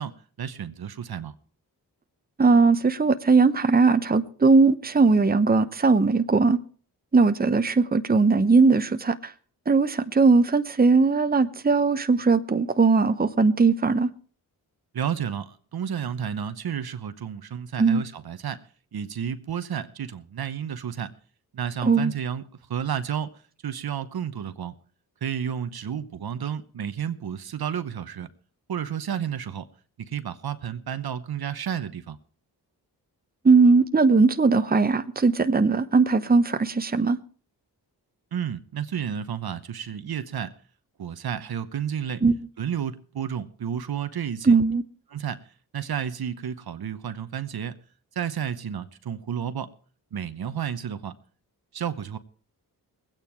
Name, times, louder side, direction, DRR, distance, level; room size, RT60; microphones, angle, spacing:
voice 1, 0.0-1.3 14.9-18.6 18.9-21.1 21.5-24.7 25.2-28.3 28.7-29.7 30.0-32.2 38.3-40.5 41.0-42.2 42.6-44.6 45.1-45.5 45.7-47.8 48.1-49.7 50.1-51.2 51.7-52.2, right 8 dB, 65° right, 1.0 m, -31 dB
voice 2, 2.4-6.6 7.1-9.3 9.7-14.1 17.8-18.0 21.8-22.1 33.4-37.2 42.2-42.4 44.4-44.8, right 4 dB, 20° right, 0.9 m, -19 dB
20.5 x 8.9 x 4.6 m
cardioid pair, 55°, 41 cm